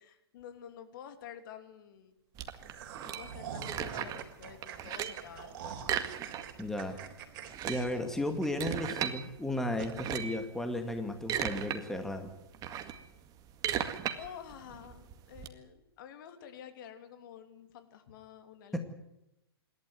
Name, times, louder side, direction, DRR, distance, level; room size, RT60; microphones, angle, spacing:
voice 1, 0.0-2.1 3.0-6.2 14.1-18.8, left 9 dB, 55° left, 8 dB, 2.9 m, -49 dB
sound 1, 2.4-4.3 4.6-5.3 5.8-6.7 7.0-7.1 7.4-9.2 9.8-10.4 11.0-11.8 12.1-15.5, right 10 dB, 30° right, 2.0 m, -36 dB
sound 2, 2.6-8.9 9.2-9.3 9.8-9.9, right 8 dB, 50° right, 3.9 m, -45 dB
voice 2, 6.6-7.0 7.7-12.3 18.7-18.8, left 1 dB, 5° left, 6 dB, 2.1 m, -34 dB
26.5 x 12.0 x 9.4 m, 0.90 s
hypercardioid pair, 125°, 13 cm